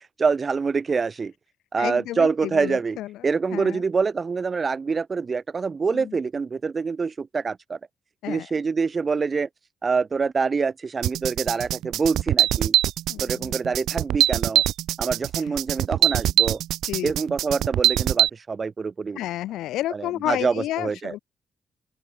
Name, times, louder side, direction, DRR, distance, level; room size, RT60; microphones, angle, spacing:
voice 1, 0.0-1.3 1.7-7.8 8.3-9.5 9.8-12.7 13.2-14.6 15.0-16.6 17.0-19.2 19.9-21.1, right 5 dB, 35° right, 1.4 m, -25 dB
voice 2, 1.8-3.8 5.9-6.2 8.2-8.5 13.1-13.5 16.8-17.1 19.2-21.2, left 14 dB, 85° left, 2.9 m, -31 dB
sound 1, 11.0-18.3, right 13 dB, 80° right, 2.3 m, -22 dB
open air
cardioid pair, 90°, 0 cm